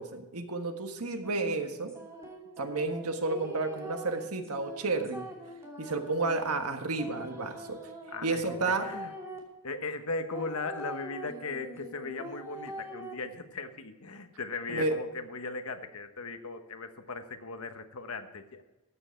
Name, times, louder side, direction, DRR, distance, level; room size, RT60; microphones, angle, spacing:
voice 1, 0.0-1.9 2.6-5.3 5.8-7.8 8.2-8.9 14.7-14.9, right 3 dB, 85° right, 6 dB, 1.5 m, -31 dB
sound 1, 1.2-9.4 10.3-13.1, right 1 dB, 15° right, 2.8 m, -44 dB
voice 2, 8.1-8.4 8.8-9.1 9.6-18.6, left 3 dB, 70° left, 8 dB, 1.2 m, -38 dB
14.0 x 9.2 x 4.5 m, 1.1 s
head